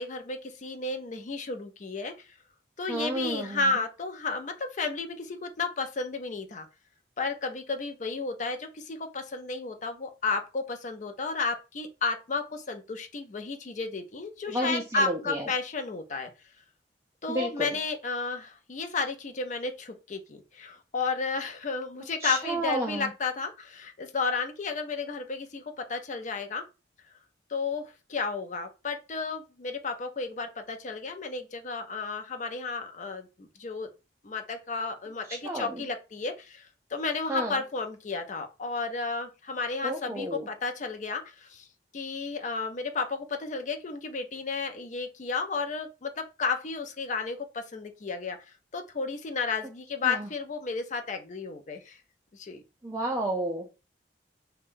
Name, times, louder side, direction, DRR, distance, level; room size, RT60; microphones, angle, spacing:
voice 1, 0.0-2.3 2.8-6.7 7.2-16.3 17.2-26.6 27.5-33.9 34.2-41.7 41.9-48.4 48.7-52.0 52.3-52.6, left 4 dB, 45° left, 0.5 m, -33 dB
voice 2, 2.9-3.7 14.5-15.5 17.3-17.8 22.2-23.1 35.3-35.8 37.3-37.6 39.8-40.5 50.0-50.3 52.8-53.7, right 1 dB, 15° right, 0.4 m, -31 dB
2.6 x 2.2 x 3.6 m
head